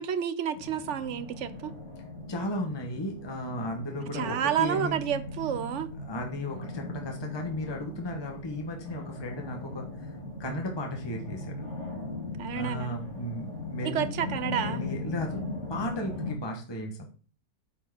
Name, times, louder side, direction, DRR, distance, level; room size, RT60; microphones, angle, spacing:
voice 1, 0.0-1.7 4.1-5.9 12.4-13.0 13.8-14.8, right 9 dB, 60° right, 1.0 m, -30 dB
sound 1, 0.5-16.4, left 2 dB, 50° left, 3.1 m, -39 dB
voice 2, 2.3-5.0 6.1-10.1 10.4-11.7 12.5-14.1 14.5-15.4 15.7-17.1, left 1 dB, 20° left, 1.2 m, -35 dB
8.9 x 4.6 x 6.1 m
omnidirectional pair, 1.6 m